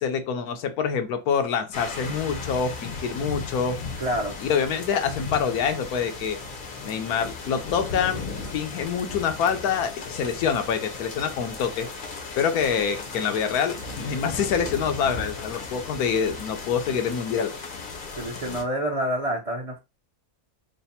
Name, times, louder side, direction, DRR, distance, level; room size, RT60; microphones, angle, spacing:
voice 1, 0.0-3.8 4.4-6.4 6.8-8.2 8.5-11.9 12.4-17.5, left 7 dB, 85° left, 1.2 m, -26 dB
sound 1, 1.7-18.6, left 4 dB, 50° left, 0.6 m, -36 dB
voice 2, 4.0-4.3 18.2-19.7, right 1 dB, 35° right, 0.6 m, -27 dB
3.3 x 2.0 x 4.1 m
omnidirectional pair, 1.6 m